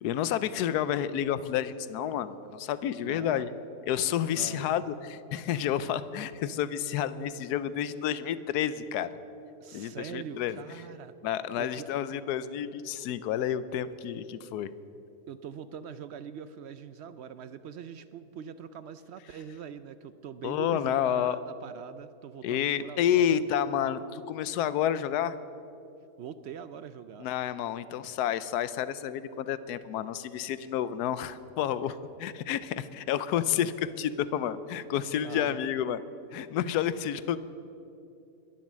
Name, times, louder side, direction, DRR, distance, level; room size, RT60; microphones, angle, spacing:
voice 1, 0.0-3.5 3.9-9.1 9.7-10.6 11.2-14.7 20.4-21.4 22.4-25.4 27.2-36.0 36.3-37.4, left 10 dB, 80° left, 15 dB, 1.2 m, -30 dB
voice 2, 3.0-3.5 4.3-4.7 9.6-11.1 11.6-11.9 15.3-23.4 26.2-27.3 33.6-33.7 35.2-35.6, right 8 dB, 70° right, 13 dB, 0.6 m, -43 dB
22.0 x 7.4 x 7.4 m, 2.7 s
omnidirectional pair, 1.7 m